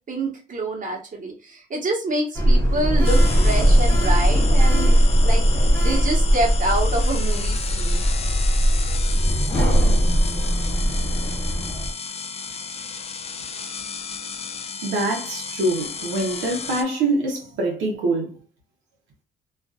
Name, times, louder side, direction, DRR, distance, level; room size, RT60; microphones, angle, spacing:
voice 1, 0.1-5.4 5.8-8.0, right 2 dB, 40° right, 1.1 m, -27 dB
Sliding door, 2.3-11.9, equal, 15° left, 0.9 m, -19 dB
sound 1, 3.0-16.8, left 5 dB, 30° left, 0.4 m, -33 dB
voice 2, 14.8-18.4, right 2 dB, 85° right, 0.8 m, -24 dB
2.5 x 2.5 x 2.3 m
cardioid pair, 90°, 20 cm